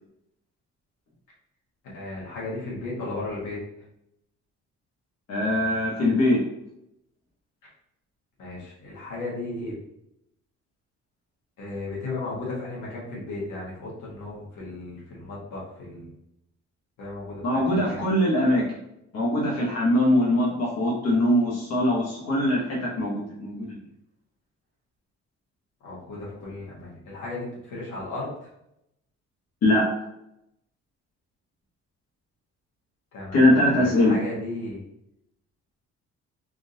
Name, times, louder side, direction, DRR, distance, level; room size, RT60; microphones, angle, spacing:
voice 1, 1.9-3.6 8.4-9.8 11.6-16.1 17.0-18.0 25.8-28.5 33.1-34.8, left 2 dB, 85° left, -5 dB, 1.4 m, -35 dB
voice 2, 5.3-6.4 17.4-18.6 19.1-23.8 29.6-29.9 33.3-34.1, left 1 dB, 55° left, -4 dB, 1.1 m, -22 dB
3.7 x 2.4 x 2.7 m, 0.81 s
cardioid pair, 90°, 30 cm